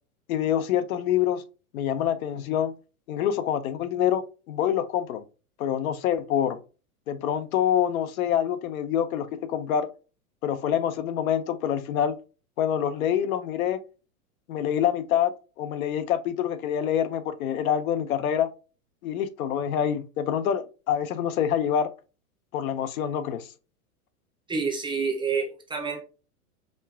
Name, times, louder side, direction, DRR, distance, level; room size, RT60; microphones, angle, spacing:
voice 1, 0.3-1.4 1.7-2.7 3.1-5.2 5.6-6.6 7.1-9.9 10.4-12.2 12.6-13.8 14.5-18.5 19.0-21.9 22.5-23.5, left 9 dB, 70° left, 0.7 m, -26 dB
voice 2, 24.5-26.0, right 5 dB, 10° right, 0.5 m, -28 dB
5.2 x 2.3 x 2.3 m
hypercardioid pair, 115°, 45 cm